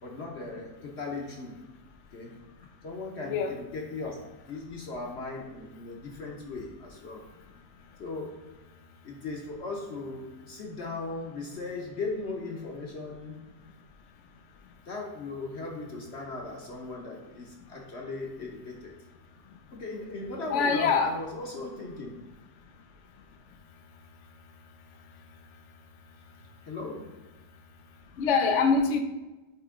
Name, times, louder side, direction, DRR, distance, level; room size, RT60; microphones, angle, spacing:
voice 1, 0.0-1.5 2.1-2.4 2.8-7.2 8.0-8.5 9.0-13.5 14.9-18.9 19.7-22.2 26.6-27.2, left 3 dB, 50° left, 0 dB, 0.9 m, -38 dB
voice 2, 20.5-21.2 28.2-29.0, left 5 dB, 75° left, 6 dB, 0.6 m, -24 dB
8.9 x 3.0 x 3.6 m, 1.1 s
omnidirectional pair, 1.9 m